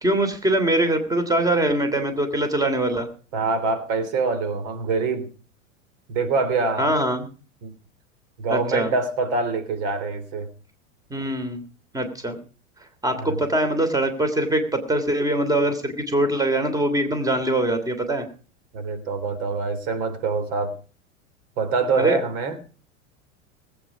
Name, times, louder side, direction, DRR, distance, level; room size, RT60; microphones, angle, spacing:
voice 1, 0.0-3.1 6.8-7.3 8.5-8.9 11.1-11.6 11.9-12.4 13.0-18.2 22.0-22.2, right 1 dB, 10° right, 8 dB, 2.9 m, -23 dB
voice 2, 3.3-5.3 6.1-7.0 7.6-7.7 8.4-10.5 13.2-13.4 18.7-20.7 21.6-22.6, right 4 dB, 55° right, 10 dB, 3.5 m, -25 dB
20.0 x 8.8 x 4.9 m, 0.38 s
hypercardioid pair, 95°, 39 cm